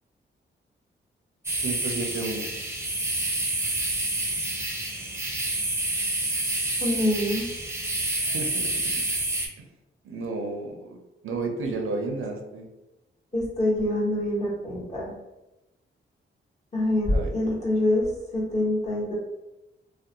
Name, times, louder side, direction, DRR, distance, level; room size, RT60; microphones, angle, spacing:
sound 1, 1.4-9.5, right 2 dB, 15° right, 0.5 m, -28 dB
voice 1, 1.6-2.5 8.2-8.7 10.0-11.0 11.2-12.7 17.1-17.3, right 3 dB, 85° right, 3 dB, 0.5 m, -32 dB
voice 2, 6.8-7.5 13.3-15.1 16.7-19.1, left 1 dB, 35° left, -5 dB, 1.0 m, -25 dB
2.5 x 2.0 x 2.8 m, 0.97 s
cardioid pair, 80°, 21 cm